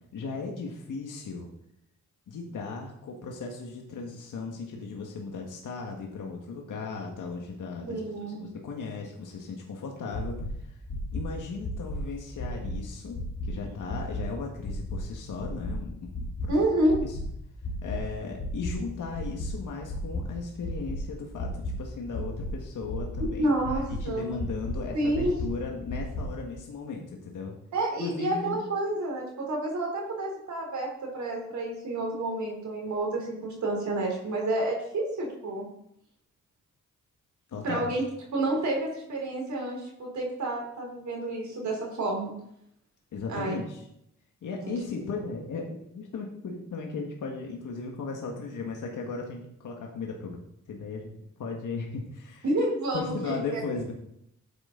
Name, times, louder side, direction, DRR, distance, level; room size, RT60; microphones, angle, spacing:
voice 1, 0.1-1.5 2.3-8.0 8.4-10.8 11.1-16.5 17.0-17.2 17.8-27.5 28.0-28.6 37.5-37.9 43.1-43.8 44.4-45.6 45.9-50.4 50.7-52.5 52.9-53.9, left 4 dB, 80° left, 0 dB, 1.7 m, -36 dB
voice 2, 7.9-8.4 16.5-17.0 23.4-24.3 24.9-25.3 27.7-35.7 37.6-38.0 38.3-42.3 43.3-43.5 44.6-44.7 52.4-53.6, right 1 dB, 65° right, -1 dB, 3.5 m, -29 dB
sound 1, 10.1-10.5 10.9-11.2 11.6-12.0 12.4-12.7 13.1-13.5 13.9-14.2 14.6-15.0 15.4-15.7 16.1-16.5 16.9-17.2 17.6-18.0 18.4-18.7 19.1-19.5 19.9-20.2 20.6-21.0 21.4-21.7 22.1-22.5 22.9-23.2 23.6-24.0 24.4-24.7 25.1-25.5 25.9-26.2, left 3 dB, 55° left, 3.4 m, -33 dB
12.5 x 9.1 x 3.9 m, 0.77 s
cardioid pair, 95°, 31 cm